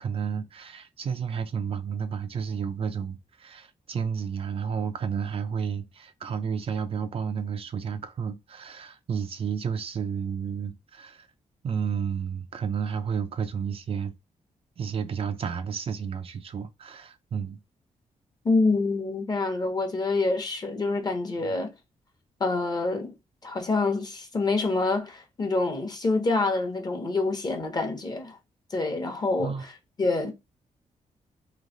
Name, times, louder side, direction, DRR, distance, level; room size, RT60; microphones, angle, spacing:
voice 1, 0.0-11.3 11.6-14.1 14.8-17.6 21.5-21.6 29.4-29.6, right 6 dB, 50° right, 0.5 m, -31 dB
voice 2, 18.4-21.7 22.4-23.1 23.4-28.4 28.7-29.7 30.0-30.3, left 3 dB, 30° left, 1.0 m, -26 dB
3.2 x 2.8 x 3.9 m
cardioid pair, 130°, 13 cm